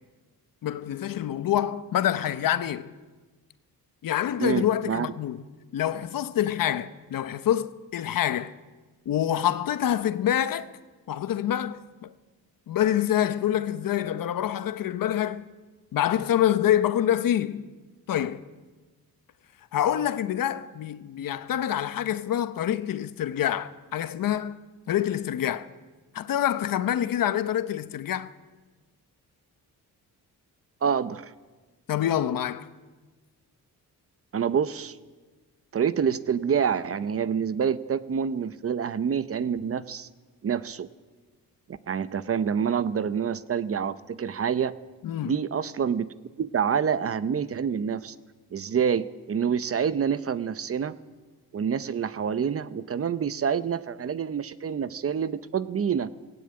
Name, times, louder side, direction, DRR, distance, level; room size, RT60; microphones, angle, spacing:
voice 1, 0.6-2.9 4.0-5.5 5.7-8.5 9.1-10.7 11.1-12.1 12.7-15.4 15.9-17.6 18.1-18.4 19.7-25.7 26.1-28.3 31.9-32.7 45.0-45.3, left 11 dB, 70° left, 1.0 m, -26 dB
voice 2, 4.4-5.1 30.8-31.3 34.3-35.0 35.7-40.1 40.4-40.9 41.9-44.7 45.2-46.1 46.4-48.1 48.5-51.0 51.5-56.1, right 7 dB, 40° right, 0.8 m, -27 dB
17.5 x 17.0 x 8.8 m
cardioid pair, 115°, 34 cm